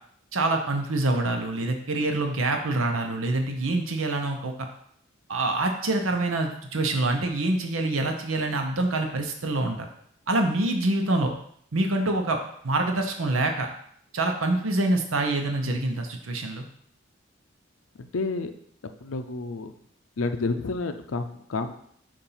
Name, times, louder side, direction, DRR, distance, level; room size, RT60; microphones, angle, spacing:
voice 1, 0.3-4.5 5.3-9.9 10.3-11.3 11.7-12.4 12.6-13.7 14.1-16.6, right 2 dB, 90° right, 4 dB, 0.8 m, -26 dB
voice 2, 18.0-18.5 19.0-19.7 20.2-21.7, left 3 dB, 90° left, 8 dB, 0.5 m, -30 dB
6.8 x 2.6 x 5.6 m, 0.65 s
head